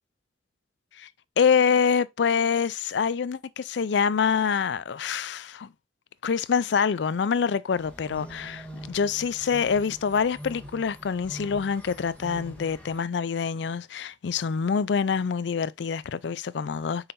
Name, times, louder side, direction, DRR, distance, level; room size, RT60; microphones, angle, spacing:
voice 1, 1.4-5.7 6.2-17.1, left 6 dB, 65° left, 0.4 m, -26 dB
sound 1, 7.7-13.0, equal, 10° left, 1.6 m, -43 dB
6.8 x 5.6 x 2.5 m
head